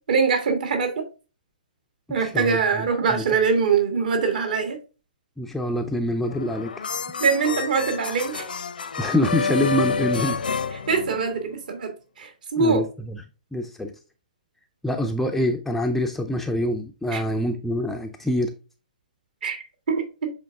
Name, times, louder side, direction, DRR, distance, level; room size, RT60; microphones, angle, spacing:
voice 1, 0.1-1.1 2.1-4.8 7.2-8.5 10.9-12.8 17.1-17.2 19.4-20.3, right 5 dB, 65° right, 1.7 m, -23 dB
voice 2, 2.2-2.6 3.1-3.2 5.4-6.8 9.0-10.4 12.6-13.2 13.5-13.9 14.8-18.5, left 1 dB, 5° left, 0.4 m, -25 dB
sound 1, 6.3-11.6, left 5 dB, 90° left, 0.9 m, -29 dB
7.7 x 3.5 x 3.6 m
hypercardioid pair, 150°, 5 cm